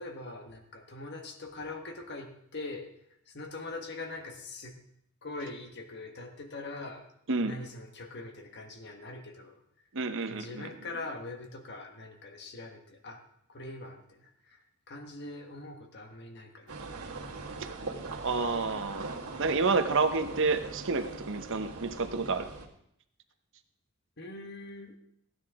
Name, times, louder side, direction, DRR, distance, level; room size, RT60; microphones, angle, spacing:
voice 1, 0.0-2.9 3.3-4.8 5.2-7.1 7.4-9.6 10.3-13.2 13.5-14.6 14.9-16.9 24.2-25.0, left 2 dB, 50° left, 5 dB, 1.4 m, -42 dB
voice 2, 9.9-10.7 17.6-17.7 18.2-19.1 19.4-22.5, right 4 dB, 60° right, 8 dB, 0.9 m, -29 dB
sound 1, 16.7-22.7, right 3 dB, 85° right, 1.9 m, -41 dB
15.5 x 9.7 x 3.6 m, 0.72 s
head